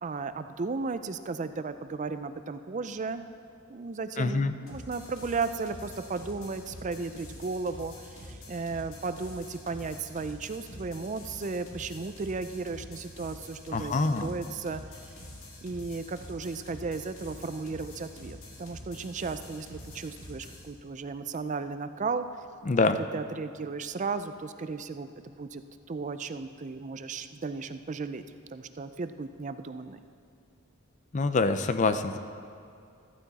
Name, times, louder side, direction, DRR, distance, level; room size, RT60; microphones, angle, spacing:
voice 1, 0.0-3.2 3.7-14.8 15.6-22.3 23.0-25.6 25.9-28.2 28.5-30.0, right 4 dB, 35° right, 11 dB, 0.4 m, -35 dB
voice 2, 4.2-4.5 13.7-14.3 22.7-23.0 31.1-32.2, left 3 dB, 35° left, 10 dB, 0.5 m, -25 dB
sound 1, 4.7-20.7, left 1 dB, 85° left, 2.7 m, -46 dB
14.5 x 14.0 x 4.1 m, 2.4 s
head